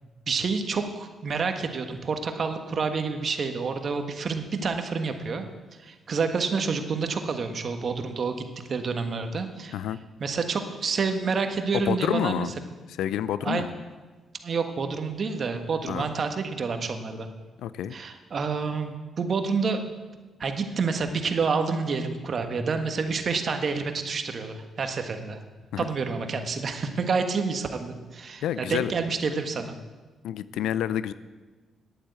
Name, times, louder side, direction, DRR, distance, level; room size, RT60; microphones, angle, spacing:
voice 1, 0.3-5.4 5.8-9.8 10.2-12.5 13.4-13.7 14.4-17.3 17.9-19.8 20.4-25.4 25.8-29.8, right 5 dB, 55° right, 6 dB, 1.5 m, -28 dB
voice 2, 11.7-12.5 13.0-13.7 15.9-16.1 17.6-17.9 25.7-25.8 28.4-28.9 30.2-31.1, left 10 dB, 80° left, 16 dB, 0.5 m, -28 dB
10.5 x 8.8 x 8.2 m, 1.3 s
supercardioid pair, 55°, 0 cm